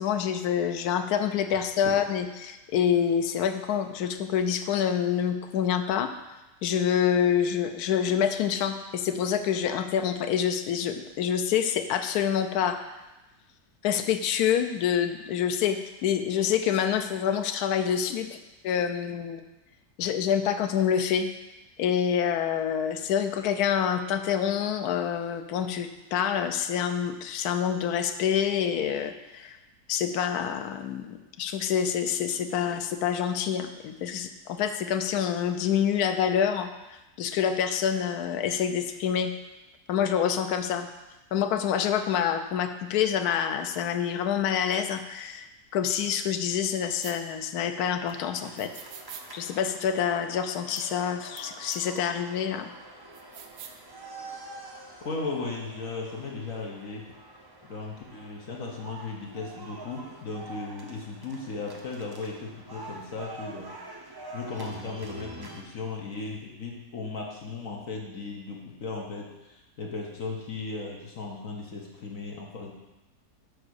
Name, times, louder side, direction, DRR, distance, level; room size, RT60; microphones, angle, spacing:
voice 1, 0.0-6.1 6.6-12.8 13.8-18.4 18.6-19.4 20.0-21.3 21.8-29.6 29.9-39.3 39.9-40.9 41.3-45.5 45.7-48.7 49.3-52.7, left 8 dB, 70° left, 8 dB, 1.1 m, -27 dB
sound 1, 47.0-47.2 48.6-49.3 50.8-50.9 51.4-51.5 51.7-51.8 53.1-53.8, right 8 dB, 75° right, 1.2 m, -44 dB
sound 2, 48.1-65.6, right 2 dB, 25° right, 0.5 m, -46 dB
voice 2, 55.0-57.1 57.6-63.7 64.3-72.7, left 3 dB, 55° left, -1 dB, 1.4 m, -36 dB
6.9 x 4.7 x 6.3 m, 1.0 s
omnidirectional pair, 1.8 m